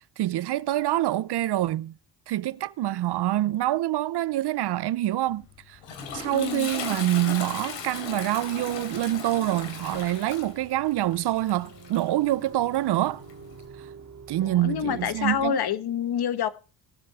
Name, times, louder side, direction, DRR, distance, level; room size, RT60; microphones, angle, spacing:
voice 1, 0.2-1.9 2.3-5.8 6.1-13.2 13.8-13.9 14.3-15.6, right 14 dB, 65° right, 0.6 m, -26 dB
Toilet flush, 5.3-13.7, left 6 dB, 85° left, 3.3 m, -38 dB
voice 2, 6.3-6.7 14.6-16.5, left 9 dB, 60° left, 1.3 m, -27 dB
sound 1, 7.5-15.5, right 5 dB, 40° right, 2.3 m, -47 dB
17.5 x 7.7 x 4.7 m
cardioid pair, 90°, 43 cm